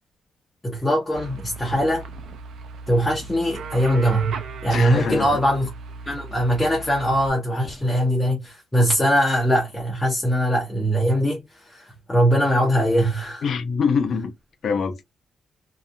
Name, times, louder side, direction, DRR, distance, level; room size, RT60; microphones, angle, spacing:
voice 1, 0.6-2.1 2.9-4.4 4.6-5.7 6.1-13.4, equal, 10° left, 0.7 m, -21 dB
sound 1, 1.1-7.3, right 4 dB, 80° right, 0.4 m, -37 dB
voice 2, 4.7-5.4 13.4-14.3 14.6-15.0, left 5 dB, 55° left, 0.5 m, -23 dB
2.6 x 2.3 x 2.4 m
wide cardioid pair, 170°, 0 cm